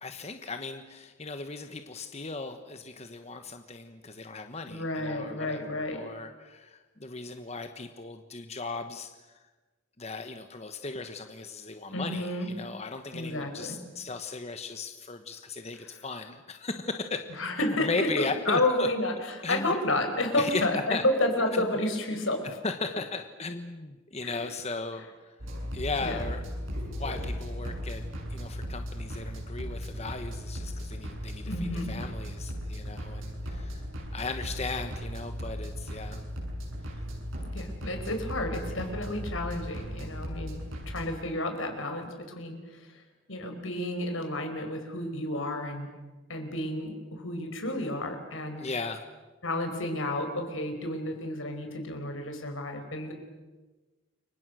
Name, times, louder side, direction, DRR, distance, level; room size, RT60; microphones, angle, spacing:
voice 1, 0.0-9.1 10.0-17.2 17.7-18.9 19.4-19.8 20.4-20.6 20.9-21.0 21.5-21.7 22.6-25.3 25.7-26.4 26.8-28.0 28.3-33.8 34.1-36.2 48.6-49.0, left 3 dB, 35° left, 7 dB, 1.2 m, -37 dB
voice 2, 4.7-6.0 11.9-12.5 13.1-13.8 15.8-15.9 17.4-22.4 24.2-24.4 26.0-26.2 31.5-32.0 37.5-42.9 43.3-45.9 46.3-48.6 49.4-53.1, left 1 dB, 85° left, 5 dB, 4.8 m, -31 dB
sound 1, 25.4-41.1, equal, 85° right, 7.7 m, -37 dB
29.5 x 24.0 x 6.3 m, 1.2 s
head